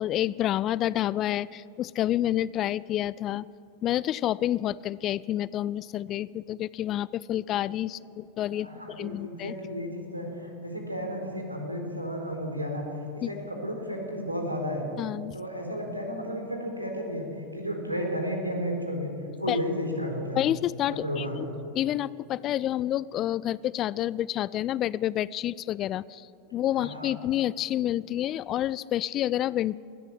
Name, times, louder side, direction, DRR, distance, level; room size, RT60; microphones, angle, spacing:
voice 1, 0.0-3.5 3.8-9.5 13.2-13.3 15.0-15.4 19.5-19.6 20.4-21.5 21.7-29.8, left 12 dB, 35° left, 21 dB, 0.4 m, -29 dB
voice 2, 8.6-12.8 13.3-14.9 15.3-17.3 17.5-19.1 19.4-20.4 20.9-21.4 26.8-27.1, equal, 85° right, 2 dB, 4.0 m, -33 dB
20.0 x 14.0 x 9.6 m, 2.5 s
figure-of-eight pair, 90°, 0 cm